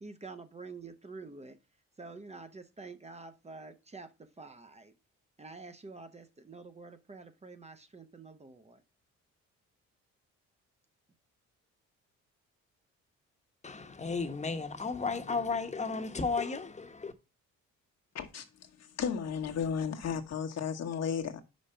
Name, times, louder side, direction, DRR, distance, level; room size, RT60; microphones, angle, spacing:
voice 1, 0.0-1.6 2.0-4.9 5.4-8.8, right 3 dB, 20° right, 0.8 m, -48 dB
voice 2, 13.6-17.1, left 4 dB, 25° left, 1.1 m, -34 dB
voice 3, 18.1-18.4 19.0-21.4, left 7 dB, 60° left, 1.2 m, -33 dB
5.2 x 4.9 x 5.6 m
cardioid pair, 90°, 30 cm